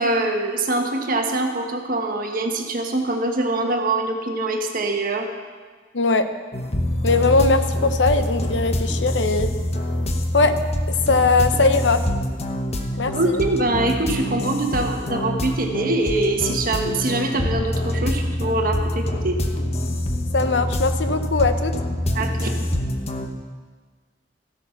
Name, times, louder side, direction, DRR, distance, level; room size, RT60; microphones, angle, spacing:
voice 1, 0.0-5.3 13.1-19.4 22.1-22.7, right 2 dB, 50° right, 3 dB, 1.4 m, -23 dB
voice 2, 5.9-6.3 7.0-9.5 10.3-10.6 10.9-12.0 13.0-13.4 20.3-21.7, left 3 dB, 75° left, 9 dB, 0.8 m, -20 dB
sound 1, 6.5-23.3, left 1 dB, 35° left, 1.0 m, -25 dB
15.0 x 8.3 x 5.9 m, 1.5 s
head